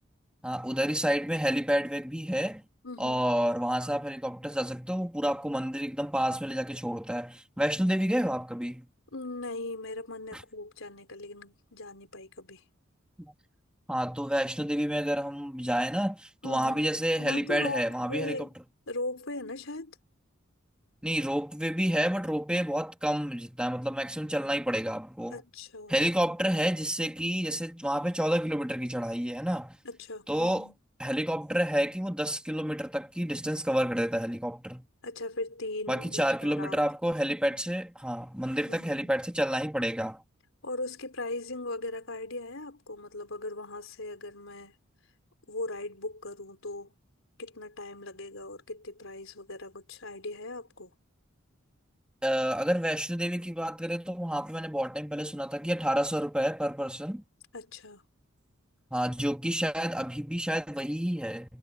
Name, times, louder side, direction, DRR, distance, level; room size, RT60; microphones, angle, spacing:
voice 1, 0.4-2.6 3.0-8.9 10.3-10.4 13.2-13.3 13.9-18.4 21.0-25.4 25.9-29.8 30.3-30.7 31.0-34.9 35.9-40.2 52.2-57.2 58.9-61.6, equal, 5° right, 2.1 m, -29 dB
voice 2, 2.8-3.2 9.1-12.6 16.4-18.5 18.9-20.0 25.3-26.0 29.8-30.8 35.0-36.8 37.5-37.7 38.6-39.1 40.6-44.8 45.5-46.9 47.4-50.9 57.5-58.0, left 2 dB, 75° left, 4.1 m, -39 dB
head